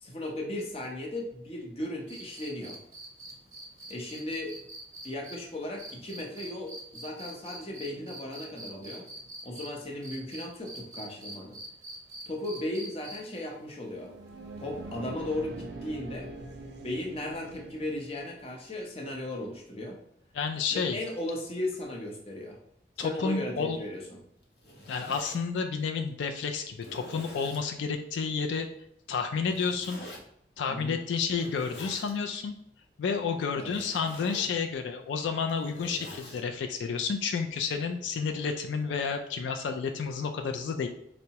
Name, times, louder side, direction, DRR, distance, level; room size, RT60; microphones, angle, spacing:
voice 1, 0.0-2.8 3.9-4.5 5.0-9.1 9.4-11.6 12.3-14.1 14.6-16.3 16.8-20.0 20.7-22.6 23.0-24.2 30.7-31.0 33.6-33.7, left 1 dB, 30° left, 0 dB, 0.6 m, -36 dB
sound 1, 2.1-9.7 10.0-13.4 15.0-15.1, right 1 dB, 20° right, 0.7 m, -44 dB
sound 2, 13.9-18.5, right 2 dB, 70° right, 0.5 m, -43 dB
voice 2, 20.3-21.0 23.0-23.8 24.9-28.7 29.1-30.0 30.6-32.5 33.0-40.9, left 5 dB, 85° left, 5 dB, 0.3 m, -30 dB
Zipper (clothing), 24.4-25.4 26.1-26.2 26.8-27.6 29.5-30.2 31.2-32.1 33.6-34.5 35.3-36.4, equal, 65° left, 0.8 m, -45 dB
4.5 x 2.0 x 2.8 m, 0.73 s
head